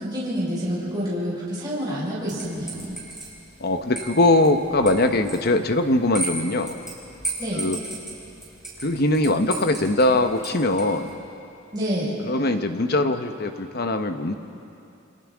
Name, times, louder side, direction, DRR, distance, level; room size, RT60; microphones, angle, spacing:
voice 1, 0.0-3.0 7.4-7.6 11.7-12.1, equal, 20° right, -8 dB, 5.1 m, -28 dB
sound 1, 2.3-11.1, right 2 dB, 5° right, 5.4 m, -37 dB
voice 2, 3.6-6.8 7.5-7.8 8.8-11.1 12.2-14.3, left 2 dB, 50° left, 7 dB, 1.0 m, -21 dB
29.0 x 26.0 x 3.6 m, 2.7 s
head